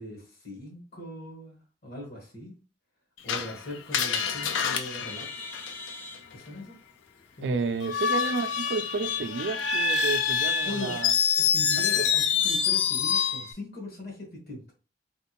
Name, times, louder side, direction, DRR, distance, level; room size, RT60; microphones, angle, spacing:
voice 1, 0.0-2.5 3.2-5.4 6.3-6.8 7.4-7.8 10.6-11.0 11.4-14.6, left 1 dB, 55° left, 1.4 m, -40 dB
Screech, 3.3-6.2 7.8-13.5, left 7 dB, 90° left, 0.4 m, -26 dB
Bird, 4.1-11.2, left 2 dB, 10° left, 0.4 m, -46 dB
voice 2, 7.4-11.1 12.0-12.1, right 4 dB, 70° right, 0.4 m, -31 dB
3.5 x 2.4 x 2.9 m
head